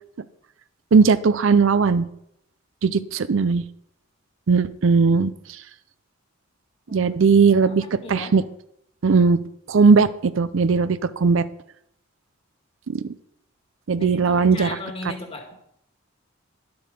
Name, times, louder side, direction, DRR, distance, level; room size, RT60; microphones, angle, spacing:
voice 1, 0.9-2.1 2.8-3.6 4.5-5.6 6.9-8.4 9.0-9.4 9.7-11.5 12.9-13.1 13.9-14.8, right 5 dB, 65° right, 15 dB, 0.5 m, -18 dB
voice 2, 7.5-8.4 14.0-15.6, left 2 dB, 25° left, 3 dB, 1.8 m, -37 dB
11.5 x 7.8 x 5.3 m, 0.76 s
head